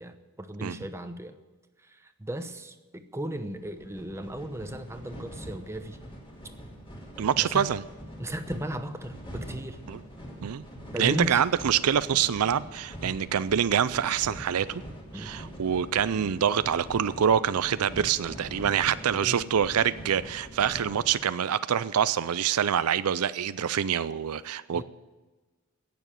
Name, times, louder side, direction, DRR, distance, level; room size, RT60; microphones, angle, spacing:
voice 1, 0.0-1.4 1.9-6.0 7.4-7.7 8.2-9.8 10.9-11.4 13.0-13.2 15.1-15.3 19.1-19.4 24.7-24.8, right 1 dB, 10° right, 8 dB, 0.9 m, -36 dB
sound 1, 3.5-21.2, equal, 25° left, 3.0 m, -44 dB
voice 2, 7.2-7.8 9.9-10.0 10.4-10.6 11.0-14.8 15.1-24.8, right 8 dB, 80° right, 15 dB, 0.5 m, -26 dB
17.0 x 7.0 x 9.0 m, 1.2 s
head